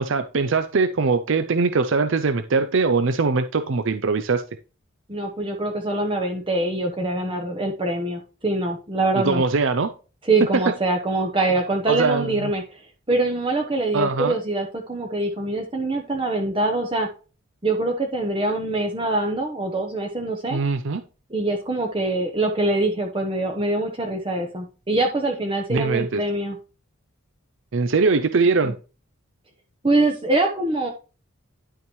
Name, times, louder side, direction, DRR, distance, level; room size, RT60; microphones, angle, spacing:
voice 1, 0.0-4.4 9.2-9.9 11.9-12.5 13.9-14.3 20.5-21.0 25.7-26.2 27.7-28.7, right 4 dB, 60° right, 10 dB, 0.5 m, -21 dB
voice 2, 5.1-9.4 10.2-17.1 17.6-20.6 21.3-26.6 28.6-28.7 29.8-30.9, right 2 dB, 25° right, 2 dB, 0.9 m, -24 dB
10.5 x 5.7 x 3.1 m, 0.35 s
head